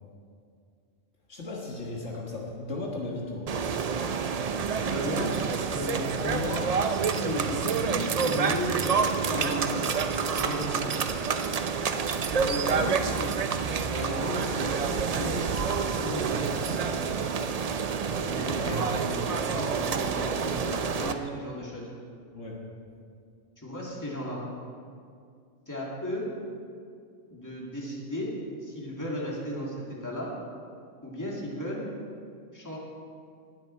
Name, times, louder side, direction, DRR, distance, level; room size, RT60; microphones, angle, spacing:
voice 1, 1.3-3.5 18.6-18.8 22.3-22.6, left 2 dB, 65° left, -2 dB, 1.8 m, -36 dB
sound 1, 3.5-21.1, right 5 dB, 50° right, 0.4 m, -28 dB
voice 2, 4.9-6.6 7.0-9.7 10.2-10.9 12.3-13.3 13.9-16.8 18.2-21.9 23.6-24.4 25.7-26.3 27.3-28.3 28.6-30.3 31.0-31.9 32.5-32.8, equal, 15° left, -4 dB, 2.3 m, -35 dB
19.5 x 7.6 x 4.4 m, 2.3 s
omnidirectional pair, 1.3 m